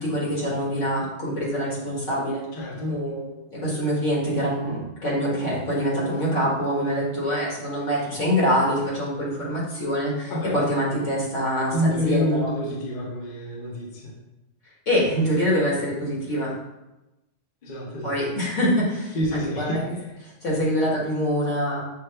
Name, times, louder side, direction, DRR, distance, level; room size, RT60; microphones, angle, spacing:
voice 1, 0.0-2.4 2.9-12.5 14.9-16.5 18.0-19.8 20.2-21.8, equal, 80° left, -5 dB, 1.8 m, -25 dB
voice 2, 2.5-3.0 10.3-10.5 11.7-14.1 17.6-18.1 19.1-19.8, equal, 45° left, -3 dB, 0.9 m, -27 dB
6.0 x 2.4 x 3.3 m, 0.98 s
omnidirectional pair, 1.3 m